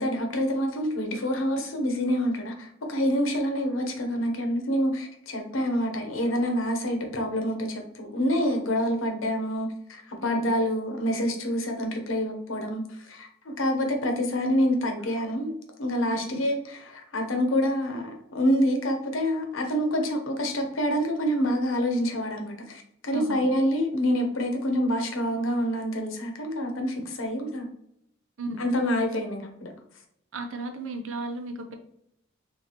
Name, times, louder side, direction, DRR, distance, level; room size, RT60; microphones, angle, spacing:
voice 1, 0.0-15.5 15.8-27.7 28.6-29.7, equal, 90° left, 3 dB, 0.9 m, -27 dB
voice 2, 23.1-23.4 28.4-28.6 30.3-31.7, right 2 dB, 85° right, 5 dB, 0.7 m, -34 dB
4.2 x 2.7 x 3.0 m, 0.75 s
head